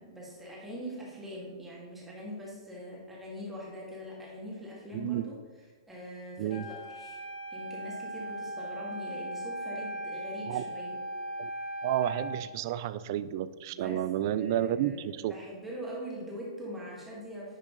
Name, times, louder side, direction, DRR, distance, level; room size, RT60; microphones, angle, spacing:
voice 1, 0.0-5.4 5.9-7.2 7.5-11.0 13.7-17.6, equal, 5° right, -5 dB, 1.9 m, -42 dB
voice 2, 4.9-5.2 6.4-6.7 10.5-10.6 11.4-11.5 11.8-15.3, right 12 dB, 45° right, 15 dB, 0.3 m, -31 dB
Wind instrument woodwind instrument, 6.5-12.5, right 1 dB, 45° left, 0.9 m, -38 dB
10.0 x 3.6 x 3.8 m, 1.4 s
hypercardioid pair, 155°, 3 cm